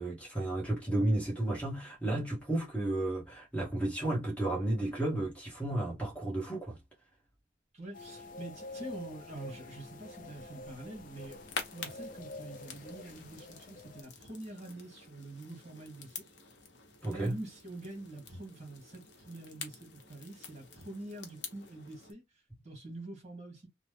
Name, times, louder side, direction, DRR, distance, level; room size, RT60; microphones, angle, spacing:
voice 1, 0.0-6.8 17.0-17.3, right 1 dB, 5° left, 1.1 m, -32 dB
voice 2, 7.7-11.4 11.7-16.1 17.0-23.7, right 2 dB, 35° right, 1.3 m, -46 dB
sound 1, 7.9-14.0, left 2 dB, 45° left, 0.5 m, -47 dB
sound 2, 11.0-22.1, left 5 dB, 60° left, 0.8 m, -47 dB
3.0 x 2.0 x 3.3 m
head